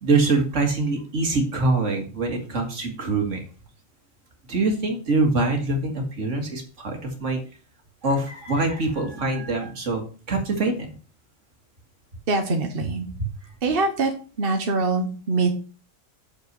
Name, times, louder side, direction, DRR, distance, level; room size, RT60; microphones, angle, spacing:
voice 1, 0.0-3.4 4.5-7.4 8.0-10.9 12.8-12.9 13.2-13.3, right 3 dB, 65° right, 3 dB, 2.1 m, -24 dB
voice 2, 12.3-13.1 13.6-14.1 14.4-15.5, right 3 dB, 45° right, 4 dB, 1.1 m, -23 dB
6.8 x 5.4 x 5.4 m, 0.37 s
omnidirectional pair, 1.4 m